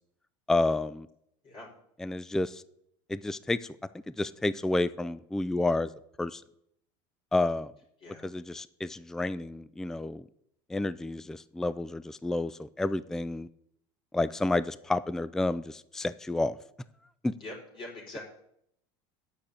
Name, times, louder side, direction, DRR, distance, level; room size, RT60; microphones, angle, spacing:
voice 1, 0.5-1.1 2.0-2.6 3.1-3.8 4.2-5.9 6.2-6.4 7.3-7.7 8.2-10.3 10.7-13.5 14.1-16.6 17.2-17.3, left 2 dB, 5° left, 17 dB, 0.3 m, -30 dB
voice 2, 17.4-18.2, left 2 dB, 35° left, -3 dB, 4.7 m, -43 dB
8.8 x 6.5 x 8.2 m, 0.73 s
supercardioid pair, 115°, 14 cm